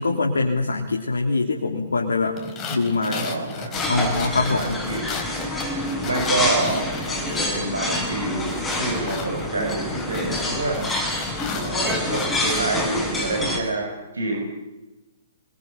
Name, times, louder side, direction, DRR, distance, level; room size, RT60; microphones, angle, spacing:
voice 1, 0.0-2.4 2.7-3.3 3.9-4.8, left 3 dB, 75° left, 1 dB, 3.4 m, -23 dB
sound 1, 2.4-7.6 7.9-12.6, left 5 dB, 25° left, 4.4 m, -35 dB
voice 2, 3.0-3.8 4.5-5.0 6.0-8.5 8.8-10.8 11.5-14.4, right 2 dB, 75° right, 1 dB, 7.9 m, -28 dB
sound 2, 3.7-13.6, left 1 dB, 10° left, 6.5 m, -27 dB
26.0 x 23.0 x 7.3 m, 1.0 s
figure-of-eight pair, 120°, 0 cm